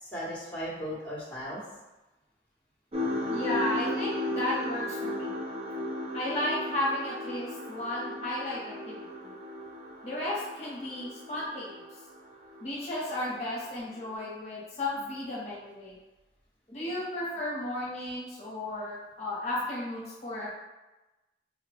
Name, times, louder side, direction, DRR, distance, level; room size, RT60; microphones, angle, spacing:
voice 1, 0.0-1.6 16.8-16.9 20.4-20.5, equal, 10° left, -7 dB, 0.9 m, -37 dB
sound 1, 2.9-12.9 13.2-13.5 14.1-14.2, left 1 dB, 35° right, 0.5 m, -35 dB
voice 2, 3.3-5.4 6.1-8.6 8.9-9.4 10.0-11.8 12.6-16.0 16.7-20.5, left 1 dB, 40° left, -6 dB, 0.8 m, -34 dB
3.8 x 2.1 x 3.3 m, 1.1 s
head